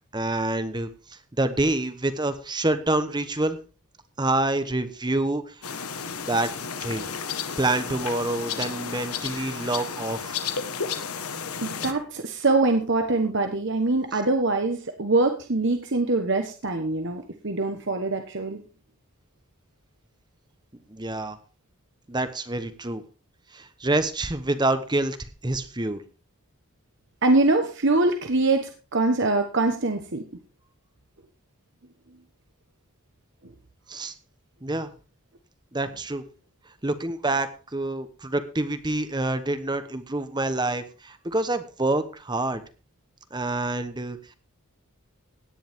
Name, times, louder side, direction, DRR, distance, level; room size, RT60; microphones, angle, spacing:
voice 1, 0.1-3.6 4.2-5.7 6.2-6.5 6.8-7.1 7.6-10.4 20.9-21.4 22.1-23.0 23.5-26.0 33.9-34.1 34.6-34.9 35.7-36.2 36.8-42.6 43.3-44.3, right 2 dB, 20° right, 11 dB, 1.0 m, -27 dB
sound 1, 5.6-11.9, left 6 dB, 80° left, 1.5 m, -32 dB
voice 2, 11.6-18.6 27.2-30.2, right 2 dB, 55° right, 5 dB, 1.2 m, -23 dB
17.0 x 10.0 x 3.6 m, 0.35 s
head